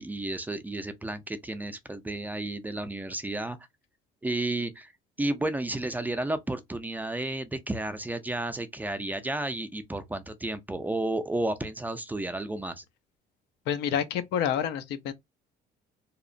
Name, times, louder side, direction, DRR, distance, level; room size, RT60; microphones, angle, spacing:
voice 1, 0.0-3.6 4.2-4.9 5.2-12.8, right 2 dB, 10° right, 0.4 m, -32 dB
voice 2, 13.7-15.1, left 9 dB, 80° left, 0.5 m, -28 dB
2.8 x 2.0 x 2.5 m
cardioid pair, 110°, 17 cm